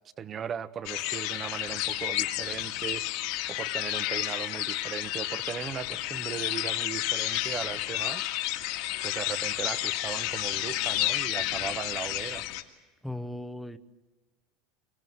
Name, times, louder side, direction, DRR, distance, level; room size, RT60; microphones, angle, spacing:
voice 1, 0.2-3.0 3.5-8.3 9.0-12.4, right 8 dB, 25° right, 0.9 m, -37 dB
sound 1, 0.8-12.6, left 16 dB, 65° left, 2.0 m, -31 dB
voice 2, 13.0-13.8, left 1 dB, ahead, 0.8 m, -37 dB
25.0 x 21.0 x 7.9 m
cardioid pair, 160°, 0 cm